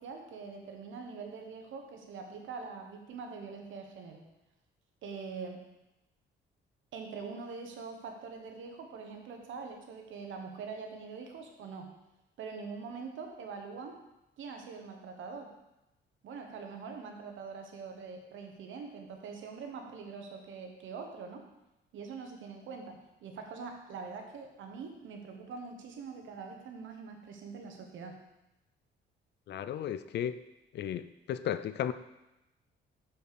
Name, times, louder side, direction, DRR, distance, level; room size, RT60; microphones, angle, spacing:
voice 1, 0.0-4.2 5.0-5.6 6.9-11.9 12.4-14.0 14.4-15.5 16.2-21.4 21.9-28.2, right 5 dB, 75° right, 3 dB, 1.3 m, -44 dB
voice 2, 29.5-30.4 30.7-31.9, left 10 dB, 60° left, 13 dB, 0.4 m, -34 dB
6.8 x 5.1 x 4.7 m, 0.94 s
cardioid pair, 90°, 20 cm